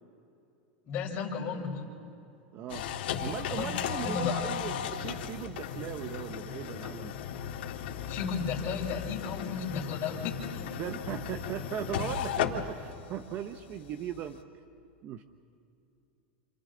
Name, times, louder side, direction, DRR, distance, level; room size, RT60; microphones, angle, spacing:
voice 1, 0.9-1.8 3.5-3.7 4.0-4.3 8.1-10.6, left 5 dB, 35° left, -1 dB, 4.3 m, -34 dB
voice 2, 2.5-2.9 3.2-7.1 10.8-14.4 15.0-15.2, right 10 dB, 35° right, 9 dB, 0.7 m, -38 dB
sound 1, 2.7-14.4, left 8 dB, 75° left, 1.9 m, -36 dB
29.5 x 28.0 x 3.8 m, 2.7 s
supercardioid pair, 145°, 6 cm